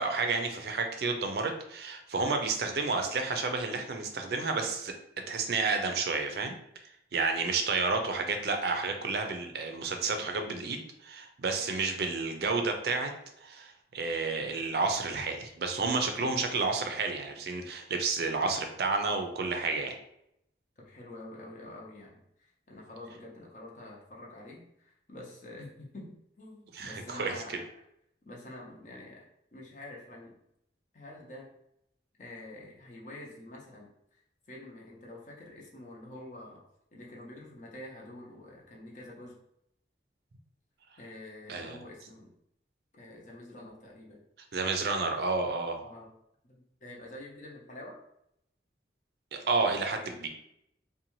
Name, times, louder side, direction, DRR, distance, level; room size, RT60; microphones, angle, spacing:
voice 1, 0.0-4.9 5.3-6.6 7.1-13.1 13.4-19.9 26.7-27.3 41.5-41.8 44.5-45.9 49.3-50.3, right 4 dB, 65° right, 5 dB, 0.4 m, -31 dB
voice 2, 2.2-2.6 7.4-7.5 11.5-11.7 18.4-18.5 20.8-27.7 28.3-29.3 29.5-30.4 30.9-31.5 32.2-36.6 36.9-39.4 41.0-42.3 42.9-44.2 45.8-46.1 46.4-48.0, left 1 dB, 45° left, -3 dB, 0.6 m, -47 dB
2.6 x 2.2 x 2.9 m, 0.77 s
head